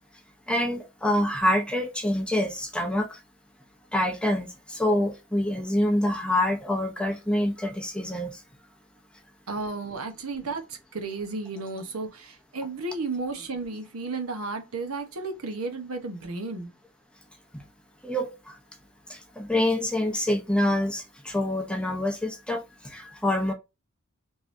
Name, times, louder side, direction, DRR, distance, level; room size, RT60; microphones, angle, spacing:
voice 1, 0.5-3.2 3.9-8.4 18.0-18.5 19.1-23.5, left 1 dB, 5° left, 0.6 m, -26 dB
voice 2, 9.5-16.7, right 3 dB, 90° right, 1.0 m, -33 dB
3.7 x 3.1 x 2.6 m
head